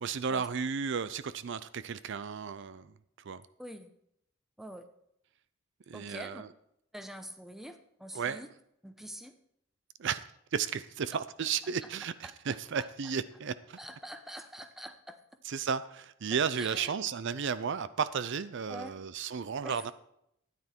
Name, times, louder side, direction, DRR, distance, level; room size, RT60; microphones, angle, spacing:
voice 1, 0.0-3.4 5.9-6.5 8.1-8.4 10.0-10.2 10.5-13.8 15.4-19.9, right 6 dB, 60° right, 15 dB, 0.5 m, -34 dB
voice 2, 3.6-3.9 4.6-4.9 5.9-6.4 6.9-8.5 8.8-9.4 12.2-12.9 13.8-15.2 16.6-17.0 18.7-19.0 19.6-19.9, equal, ahead, 8 dB, 0.8 m, -45 dB
12.5 x 9.9 x 4.5 m, 0.76 s
head